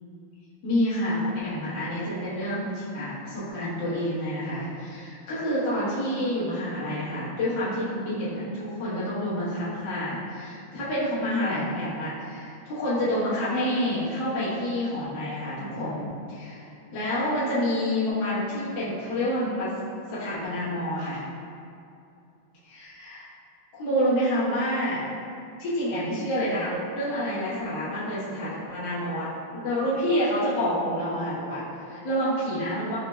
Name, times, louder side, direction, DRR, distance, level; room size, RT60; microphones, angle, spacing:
voice 1, 0.6-19.7 20.1-21.2 22.7-23.3 23.8-25.1 25.6-33.0, equal, 85° left, -11 dB, 1.0 m, -28 dB
5.4 x 3.1 x 2.3 m, 2.6 s
omnidirectional pair, 4.1 m